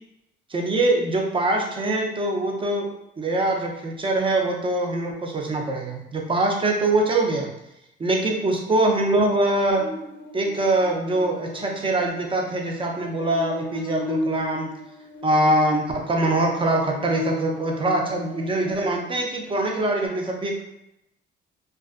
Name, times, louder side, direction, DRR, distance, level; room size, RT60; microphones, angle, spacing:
voice 1, 0.5-2.9 3.2-7.5 8.0-9.9 10.3-14.7 15.2-20.6, right 2 dB, 25° right, 1 dB, 0.5 m, -23 dB
Buzz, 9.8-19.2, left 2 dB, 75° left, 0.5 m, -35 dB
2.4 x 2.3 x 2.4 m, 0.83 s
cardioid pair, 90°, 20 cm